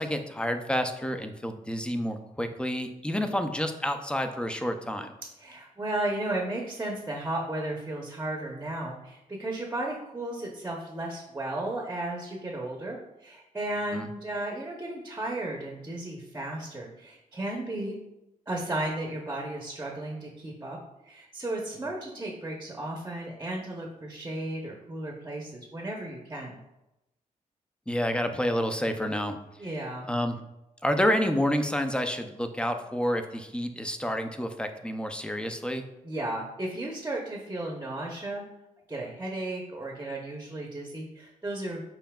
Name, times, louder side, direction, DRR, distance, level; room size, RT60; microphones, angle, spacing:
voice 1, 0.0-5.1 13.9-14.1 27.9-29.4 30.1-30.4 30.8-35.9, equal, 5° left, 7 dB, 0.5 m, -29 dB
voice 2, 5.4-18.0 18.5-20.8 21.0-26.6 29.6-30.1 36.0-38.4 38.9-41.8, right 1 dB, 20° right, -1 dB, 0.8 m, -34 dB
5.6 x 4.1 x 2.3 m, 0.92 s
cardioid pair, 80°, 14 cm